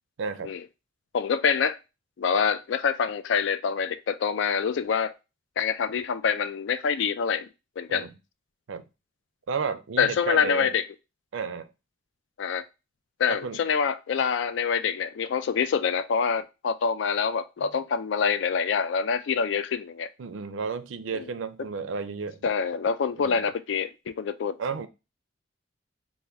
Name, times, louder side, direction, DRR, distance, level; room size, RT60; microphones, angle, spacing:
voice 1, 0.2-0.5 7.9-8.1 8.7-8.8 9.5-10.7 11.3-11.7 13.3-13.6 20.2-22.4 23.2-23.4 24.6-24.9, right 5 dB, 85° right, 0.4 m, -32 dB
voice 2, 1.1-1.8 2.2-5.1 5.6-7.5 7.8-8.1 10.0-10.9 12.4-12.6 13.2-20.1 21.1-21.2 22.4-24.6, left 6 dB, 70° left, 0.3 m, -26 dB
4.3 x 2.2 x 3.4 m
head